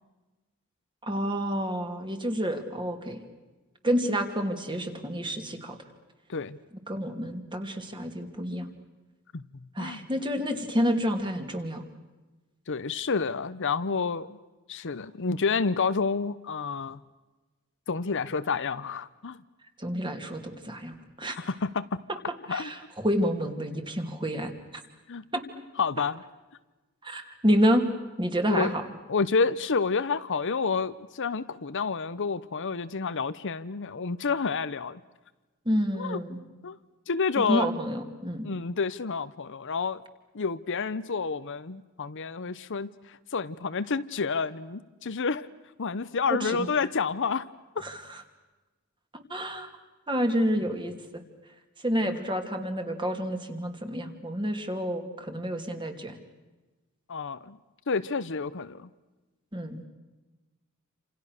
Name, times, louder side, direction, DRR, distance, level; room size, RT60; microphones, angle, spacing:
voice 1, 1.0-3.2 3.8-5.8 6.9-8.7 9.8-11.8 19.8-21.4 22.5-24.5 25.3-25.4 27.0-27.8 28.2-28.8 35.6-36.4 37.4-38.5 46.3-46.7 47.8-48.2 49.1-49.7 50.1-50.9 51.8-56.1 59.5-59.8, equal, 20° right, 5 dB, 2.8 m, -29 dB
voice 2, 12.7-14.4 14.7-17.0 17.9-19.4 21.3-22.0 22.5-22.7 25.1-25.3 25.8-26.2 28.5-28.7 29.1-35.0 35.9-36.2 36.6-36.8 37.1-37.7 38.4-40.0 40.3-45.5 45.8-47.4 52.1-52.2 57.1-57.6 57.9-58.9, left 5 dB, 55° left, 14 dB, 0.8 m, -29 dB
28.5 x 27.5 x 6.6 m, 1.2 s
head